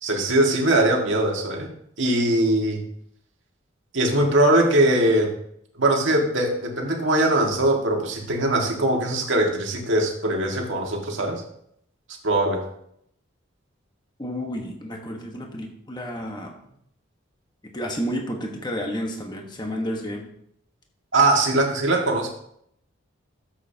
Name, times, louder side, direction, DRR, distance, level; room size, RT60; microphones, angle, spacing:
voice 1, 0.0-2.8 3.9-5.3 5.8-11.4 12.2-12.6 21.1-22.3, right 1 dB, 70° right, 1 dB, 1.8 m, -21 dB
voice 2, 14.2-16.6 17.6-20.3, equal, 20° left, 2 dB, 1.2 m, -31 dB
13.5 x 7.6 x 2.8 m, 0.71 s
head